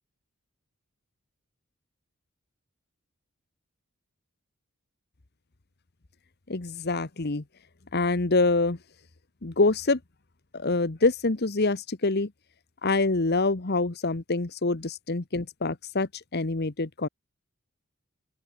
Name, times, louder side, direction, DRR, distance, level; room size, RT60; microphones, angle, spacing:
voice 1, 6.5-7.4 7.9-8.8 9.4-10.0 10.5-12.3 12.8-17.1, left 3 dB, 50° left, 1.2 m, -25 dB
open air
head